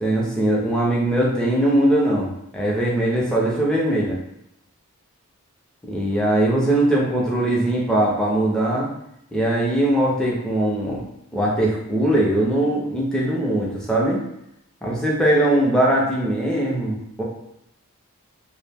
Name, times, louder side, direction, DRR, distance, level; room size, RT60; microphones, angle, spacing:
voice 1, 0.0-4.2 5.9-8.9 9.3-11.0 11.3-14.2 14.8-17.2, right 1 dB, 5° left, -4 dB, 0.4 m, -20 dB
2.5 x 2.0 x 3.3 m, 0.80 s
head